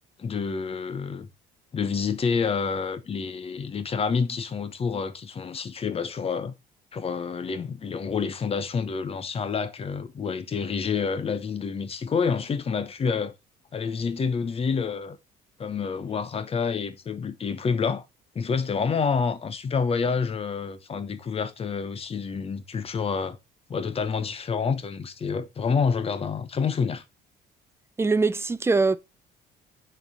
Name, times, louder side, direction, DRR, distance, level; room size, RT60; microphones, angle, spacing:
voice 1, 0.2-1.3 1.7-6.5 6.9-13.3 13.7-15.2 15.6-18.0 18.3-23.4 23.7-27.0, left 5 dB, 35° left, 1.0 m, -28 dB
voice 2, 28.0-29.0, right 3 dB, 15° right, 0.5 m, -22 dB
6.9 x 4.5 x 5.1 m
cardioid pair, 110°, 17 cm